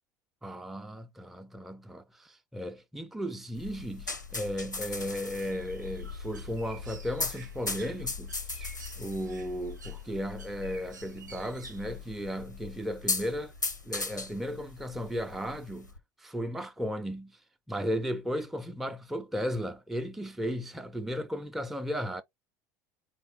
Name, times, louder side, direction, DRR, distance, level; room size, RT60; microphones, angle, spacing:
voice 1, 0.4-8.7 9.0-13.5 13.8-15.9 16.2-17.4 17.7-22.2, equal, ahead, 0.4 m, -35 dB
sound 1, 3.6-16.0, left 3 dB, 90° left, 0.6 m, -38 dB
Bird, 4.3-12.4, right 4 dB, 80° right, 0.6 m, -52 dB
4.3 x 3.1 x 3.3 m
figure-of-eight pair, 70°, 10 cm